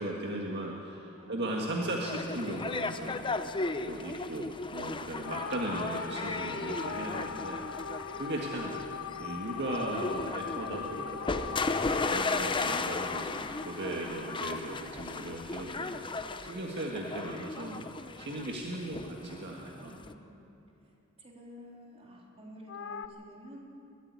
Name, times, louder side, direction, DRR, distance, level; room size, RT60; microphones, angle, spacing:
voice 1, 0.0-3.2 3.8-7.6 8.2-8.8 9.2-11.6 12.1-16.0 16.4-17.9 18.2-20.0, right 1 dB, 50° right, -1 dB, 1.8 m, -37 dB
voice 2, 1.2-2.2 20.0-20.5 20.8-23.6, equal, 30° right, -1 dB, 3.5 m, -52 dB
sound 1, 2.0-20.1, left 3 dB, 25° left, 0.7 m, -36 dB
sound 2, 5.2-15.7 22.7-23.1, left 6 dB, 60° left, 0.8 m, -41 dB
21.5 x 13.5 x 9.6 m, 2.8 s
head